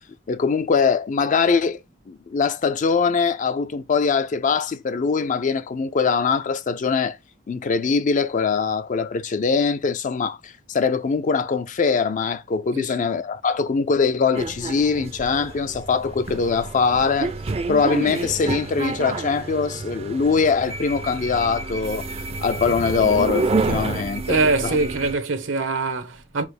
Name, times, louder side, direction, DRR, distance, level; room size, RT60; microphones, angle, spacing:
voice 1, 0.3-1.8 2.1-7.2 7.5-17.3 17.7-22.0 22.4-24.8, left 5 dB, 40° left, 0.4 m, -22 dB
voice 2, 12.7-13.1 24.3-26.4, right 3 dB, 85° right, 0.9 m, -23 dB
sound 1, 14.3-25.2, right 3 dB, 30° right, 0.4 m, -29 dB
4.8 x 2.1 x 4.7 m
head